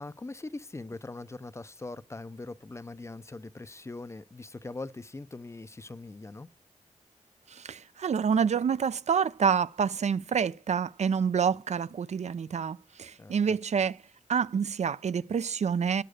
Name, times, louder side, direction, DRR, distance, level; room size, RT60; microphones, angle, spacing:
voice 1, 0.0-6.5 13.2-13.3, left 2 dB, 20° left, 0.5 m, -41 dB
voice 2, 7.5-14.0 14.3-16.0, right 6 dB, 60° right, 0.4 m, -27 dB
11.0 x 6.7 x 6.3 m
wide cardioid pair, 110°, 13 cm